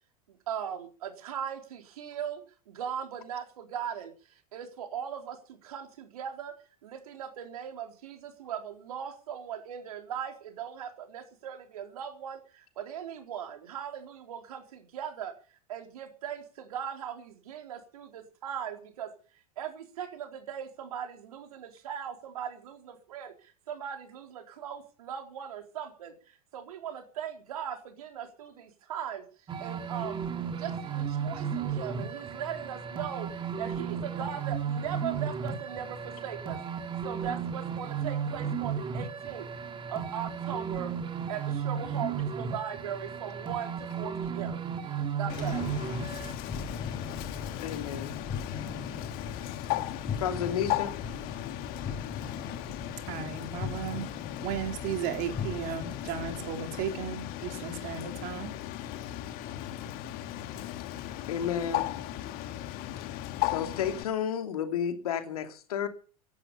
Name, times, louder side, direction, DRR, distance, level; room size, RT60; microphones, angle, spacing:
voice 1, 0.3-4.1 4.5-6.5 6.8-15.3 15.7-19.1 19.6-29.2 29.6-36.6 37.0-39.5 39.9-40.9 41.3-44.6 45.2-45.6, right 8 dB, 70° right, 4.2 m, -39 dB
sound 1, 29.5-46.3, right 7 dB, 25° right, 2.6 m, -34 dB
Bird, 45.3-64.0, left 14 dB, 50° left, 1.9 m, -37 dB
sound 2, 45.3-56.9, left 5 dB, 25° left, 5.5 m, -40 dB
voice 2, 47.6-48.1 50.2-50.9 61.3-61.8 63.4-65.9, left 8 dB, 70° left, 2.8 m, -31 dB
voice 3, 53.0-54.1 54.4-58.5, right 8 dB, 50° right, 3.8 m, -35 dB
16.5 x 11.5 x 7.1 m
hypercardioid pair, 85°, 19 cm